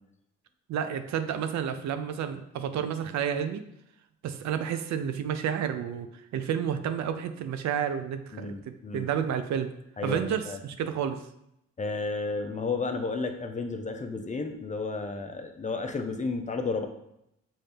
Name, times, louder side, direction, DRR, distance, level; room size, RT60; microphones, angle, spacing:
voice 1, 0.7-3.6 4.2-6.1 6.3-8.5 8.9-9.7 10.0-11.2, right 8 dB, 65° right, 9 dB, 0.5 m, -30 dB
voice 2, 8.3-9.1 10.0-10.6 11.8-16.9, left 3 dB, 25° left, 6 dB, 0.5 m, -32 dB
5.7 x 2.7 x 3.4 m, 0.80 s
cardioid pair, 90°, 30 cm